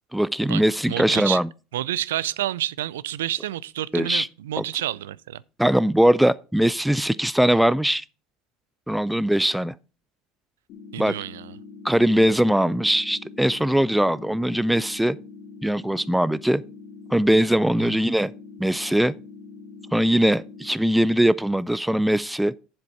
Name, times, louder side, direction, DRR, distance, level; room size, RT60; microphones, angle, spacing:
voice 1, 0.1-1.5 3.9-4.3 4.6-4.7 5.6-8.0 8.9-9.7 11.0-11.1 11.8-15.2 15.6-16.6 17.1-18.3 18.6-19.1 19.9-22.5, right 1 dB, 5° right, 0.3 m, -21 dB
voice 2, 0.9-1.4 1.7-5.4 10.9-11.5 17.8-18.0, right 13 dB, 80° right, 0.4 m, -29 dB
sound 1, 10.7-20.7, left 4 dB, 60° left, 2.6 m, -43 dB
7.6 x 7.4 x 4.6 m
hypercardioid pair, 80°, 0 cm